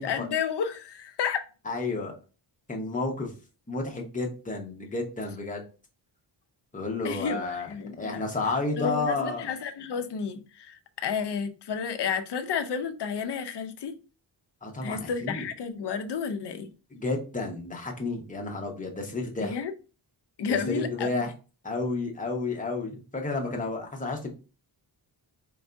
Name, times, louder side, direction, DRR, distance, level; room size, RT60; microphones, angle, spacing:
voice 1, 0.0-1.4 7.0-8.2 8.8-13.9 14.8-16.7 19.4-19.7 20.4-21.2, left 6 dB, 60° left, 0.6 m, -31 dB
voice 2, 1.6-2.1 2.7-3.3 3.7-5.6 6.7-7.7 8.0-9.5 14.6-15.5 16.9-19.6 20.5-21.3 21.6-24.3, left 3 dB, 15° left, 0.8 m, -31 dB
4.6 x 2.6 x 3.4 m
wide cardioid pair, 175°, 46 cm